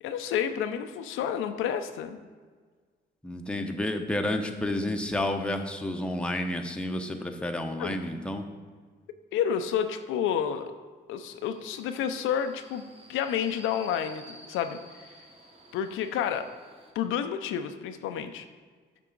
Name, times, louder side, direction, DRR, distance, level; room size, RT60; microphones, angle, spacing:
voice 1, 0.0-2.2 7.8-8.0 9.3-10.7 11.1-12.8 13.1-14.8 15.7-16.5 16.9-18.4, left 8 dB, 85° left, 8 dB, 0.5 m, -30 dB
voice 2, 3.2-8.4, left 1 dB, 5° left, 4 dB, 0.7 m, -30 dB
Subway metro underground, 11.3-16.9, right 2 dB, 30° right, 1.1 m, -52 dB
7.5 x 6.0 x 3.9 m, 1.5 s
cardioid pair, 90°, 20 cm